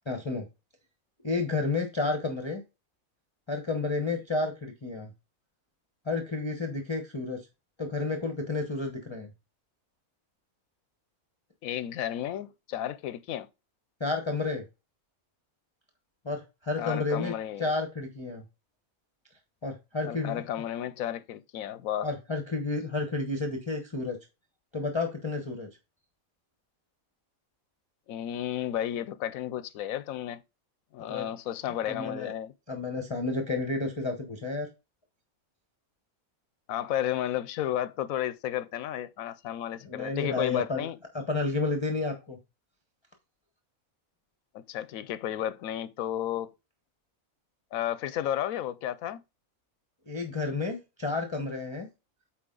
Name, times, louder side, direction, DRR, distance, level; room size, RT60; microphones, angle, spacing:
voice 1, 0.1-0.5 1.2-2.6 3.5-5.1 6.1-7.4 7.8-9.3 14.0-14.6 16.2-17.3 17.6-18.4 19.6-20.4 22.0-24.2 24.7-25.7 31.1-31.3 31.9-32.3 32.7-34.7 39.9-40.9 41.1-42.4 50.1-51.9, left 3 dB, 25° left, 0.9 m, -31 dB
voice 2, 11.6-13.5 16.8-17.7 20.0-22.1 28.1-30.4 30.9-32.5 36.7-41.0 44.5-46.5 47.7-49.2, left 11 dB, 75° left, 1.0 m, -32 dB
8.5 x 4.5 x 3.8 m
omnidirectional pair, 1.5 m